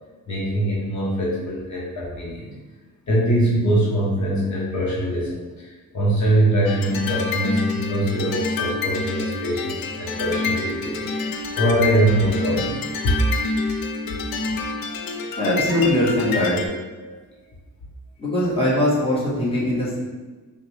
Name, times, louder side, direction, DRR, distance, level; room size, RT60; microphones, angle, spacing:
voice 1, 0.3-2.5 3.1-13.2 17.0-17.2, right 1 dB, 55° left, -5 dB, 1.0 m, -23 dB
sound 1, 6.7-16.7, left 3 dB, 80° left, 0.5 m, -27 dB
voice 2, 15.4-16.6 18.2-20.0, left 1 dB, 15° left, -7 dB, 1.2 m, -21 dB
5.5 x 2.3 x 3.2 m, 1.2 s
wide cardioid pair, 125°, 34 cm